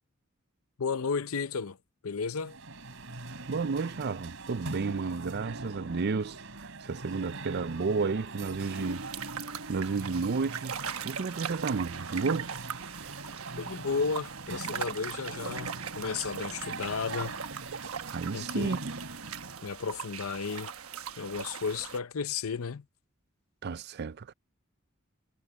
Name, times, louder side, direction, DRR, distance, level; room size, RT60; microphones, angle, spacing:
voice 1, 0.8-1.8 2.0-2.6 13.6-17.3 18.3-18.7 19.6-20.7 21.2-22.8, left 5 dB, 75° left, 0.6 m, -33 dB
sound 1, 2.4-19.7, right 2 dB, 65° right, 5.0 m, -42 dB
voice 2, 3.5-9.1 9.7-10.7 11.0-12.5 18.1-19.0 23.6-24.3, right 4 dB, 50° right, 0.5 m, -32 dB
sound 2, 8.6-22.0, right 7 dB, 85° right, 1.2 m, -40 dB
head